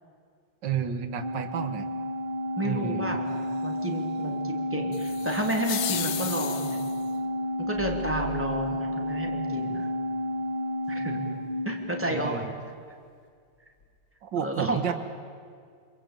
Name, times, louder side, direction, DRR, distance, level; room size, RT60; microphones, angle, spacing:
voice 1, 0.6-1.9 2.6-3.2 12.1-12.4 14.2-14.9, right 8 dB, 90° right, 8 dB, 1.9 m, -31 dB
Organ, 1.2-12.5, left 1 dB, 30° right, 2.7 m, -31 dB
voice 2, 2.6-6.8 7.7-9.9 10.9-12.5 14.3-14.9, right 1 dB, 5° right, 1 dB, 3.1 m, -32 dB
sound 1, 4.9-7.1, left 9 dB, 70° left, 1.7 m, -34 dB
sound 2, 5.1-6.1 7.6-10.2 10.7-10.8 13.8-14.0, left 2 dB, 50° left, 3.2 m, -43 dB
27.5 x 21.5 x 9.1 m, 2.2 s
omnidirectional pair, 1.9 m